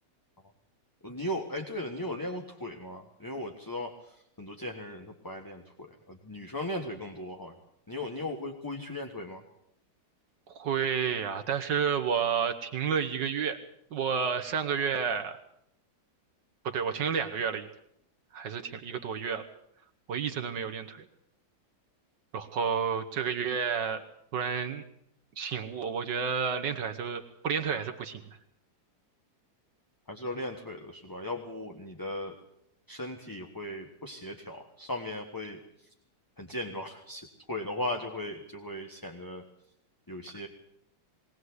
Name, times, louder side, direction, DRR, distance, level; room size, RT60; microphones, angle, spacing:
voice 1, 1.0-7.6 7.9-9.4 30.1-32.4 32.9-35.9 36.4-39.4 40.1-40.5, left 1 dB, 10° left, 3 dB, 1.2 m, -37 dB
voice 2, 10.5-13.6 13.9-15.4 16.6-17.7 18.3-19.4 20.1-21.1 22.3-24.0 24.3-24.8 25.4-28.4, right 6 dB, 70° right, 7 dB, 1.7 m, -30 dB
21.5 x 18.0 x 8.1 m, 0.74 s
omnidirectional pair, 2.1 m